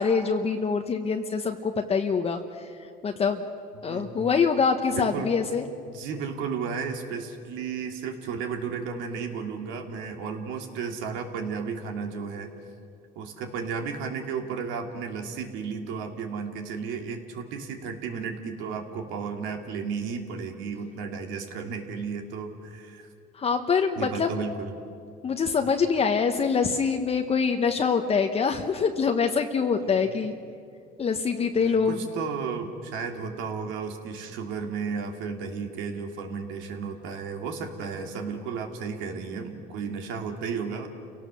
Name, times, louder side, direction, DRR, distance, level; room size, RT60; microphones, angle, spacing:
voice 1, 0.0-3.5 3.8-5.6 23.3-24.3 25.2-30.3 31.0-32.0, left 5 dB, 30° left, 4 dB, 1.1 m, -25 dB
voice 2, 3.8-4.3 4.9-5.3 5.9-12.5 13.1-23.1 24.0-24.7 29.8-30.0 31.6-40.9, right 5 dB, 75° right, 4 dB, 2.7 m, -33 dB
29.0 x 17.5 x 6.9 m, 2.5 s
cardioid pair, 115°, 20 cm